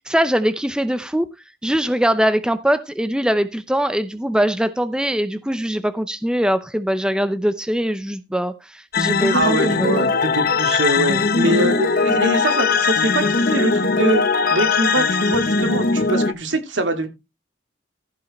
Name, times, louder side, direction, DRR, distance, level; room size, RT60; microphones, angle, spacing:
voice 1, 0.1-1.3 1.6-10.1, equal, 5° right, 0.6 m, -22 dB
sound 1, 8.9-16.3, left 4 dB, 50° left, 1.1 m, -19 dB
voice 2, 9.3-14.2 14.5-17.1, right 1 dB, 75° right, 2.5 m, -23 dB
15.0 x 5.5 x 4.2 m
head